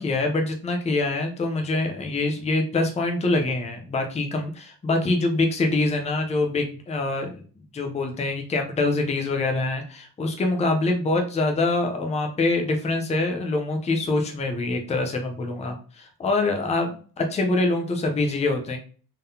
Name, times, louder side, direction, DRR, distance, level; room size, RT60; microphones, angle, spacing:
voice 1, 0.0-7.4 7.7-16.9 17.2-18.8, left 2 dB, 15° left, 4 dB, 0.5 m, -25 dB
3.8 x 3.7 x 2.7 m, 0.40 s
cardioid pair, 155°, 41 cm